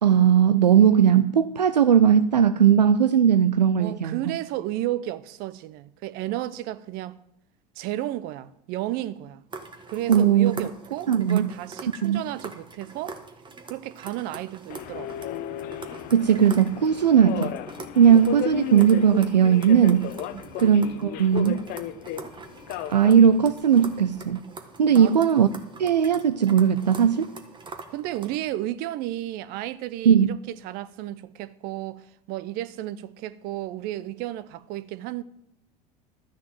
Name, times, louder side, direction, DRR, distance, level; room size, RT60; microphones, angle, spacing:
voice 1, 0.0-4.2 10.1-10.5 11.1-11.5 12.0-12.2 16.1-17.5 18.0-20.1 20.6-21.6 22.9-24.4 24.8-25.5 25.8-27.3 30.1-30.4, right 8 dB, 80° right, 0.5 m, -18 dB
voice 2, 3.8-7.2 7.8-9.4 9.9-13.2 13.7-15.2 20.3-20.5 24.9-25.1 27.9-35.2, right 14 dB, 45° right, 0.7 m, -33 dB
sound 1, 9.5-28.5, right 4 dB, 20° right, 1.5 m, -43 dB
Subway metro underground, 14.7-24.4, left 12 dB, 45° left, 0.8 m, -35 dB
13.0 x 5.9 x 7.6 m
figure-of-eight pair, 75°, 21 cm